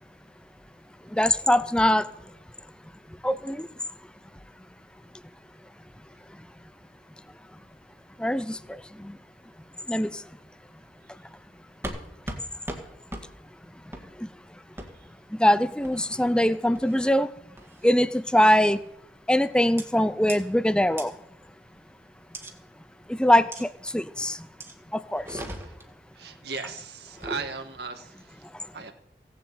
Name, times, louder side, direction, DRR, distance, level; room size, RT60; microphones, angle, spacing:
voice 1, 1.1-2.0 3.2-3.7 8.2-8.6 9.0-9.1 9.9-10.1 15.4-17.3 17.8-18.8 19.3-21.1 23.1-23.7 23.9-24.4 24.9-25.4, left 1 dB, 5° left, 15 dB, 0.5 m, -22 dB
sound 1, 11.8-12.0 12.3-12.4 12.7-12.8 13.1-13.2 13.9-14.1 14.8-14.9 15.8-16.2 16.7-17.1 17.6-17.9 18.7-19.0 19.8-19.9 20.3-20.4 21.0-21.1 22.3-22.5 23.5-23.6 24.6-24.7 25.2-25.9 27.0-27.5, right 1 dB, 15° right, 1.7 m, -37 dB
voice 2, 14.8-15.1 24.2-24.4 25.5-25.8 26.1-28.9, right 4 dB, 65° right, 5 dB, 1.8 m, -39 dB
16.5 x 7.5 x 8.5 m, 0.78 s
head